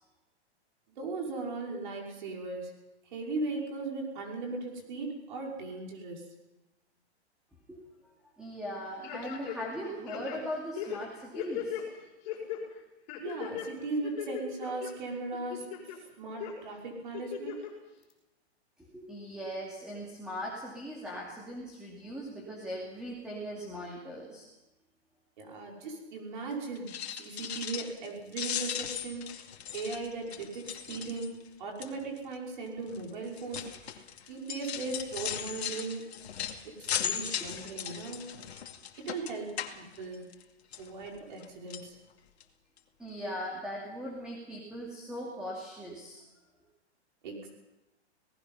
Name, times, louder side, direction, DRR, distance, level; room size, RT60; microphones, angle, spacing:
voice 1, 1.0-2.8 3.1-6.3 13.2-15.7 16.2-17.6 25.4-26.9 27.2-29.5 29.7-36.0 36.6-38.2 39.0-40.2 40.8-42.0 47.2-47.5, right 3 dB, 45° right, -1 dB, 5.7 m, -38 dB
voice 2, 8.4-11.8 18.9-24.4 43.0-46.2, equal, ahead, -4 dB, 2.7 m, -39 dB
sound 1, 9.0-9.8 10.1-11.8 12.2-12.6 13.1-13.7 14.0-14.9 15.3-16.0 16.4-16.5 17.1-17.7 18.1-18.2, left 9 dB, 30° left, 5.4 m, -38 dB
sound 2, 26.8-28.1 28.3-31.5 31.8-32.2 32.9-40.4 40.7-41.4 41.7-41.9 42.4-42.5 42.8-42.9, left 9 dB, 70° left, 2.5 m, -38 dB
26.5 x 19.0 x 5.7 m, 1.0 s
hypercardioid pair, 180°, 33 cm